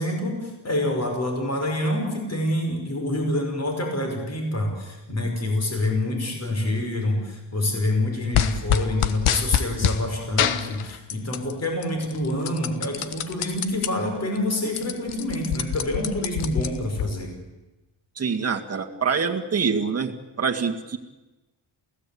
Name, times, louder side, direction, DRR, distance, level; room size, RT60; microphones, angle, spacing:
voice 1, 0.0-17.3, left 1 dB, 30° left, 2 dB, 5.5 m, -27 dB
sound 1, 8.3-10.0 10.4-11.5 11.8-13.9 14.3-14.4 14.6-17.1, left 9 dB, 85° left, 1.4 m, -25 dB
voice 2, 18.2-20.1 20.4-21.0, right 5 dB, 30° right, 3 dB, 1.9 m, -25 dB
28.5 x 17.0 x 8.6 m, 1.1 s
wide cardioid pair, 165°, 49 cm